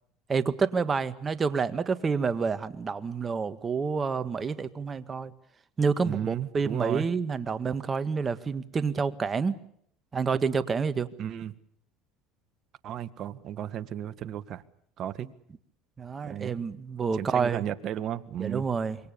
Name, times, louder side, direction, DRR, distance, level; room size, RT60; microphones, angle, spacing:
voice 1, 0.3-5.3 5.8-9.6 10.1-11.1 16.0-17.6 18.4-19.0, right 5 dB, 25° right, 12 dB, 1.8 m, -28 dB
voice 2, 6.0-7.0 11.2-11.5 12.8-14.6 15.0-15.3 16.2-16.6 17.2-18.6, right 10 dB, 50° right, 14 dB, 1.6 m, -34 dB
26.5 x 23.0 x 7.0 m, 0.69 s
supercardioid pair, 100°, 0 cm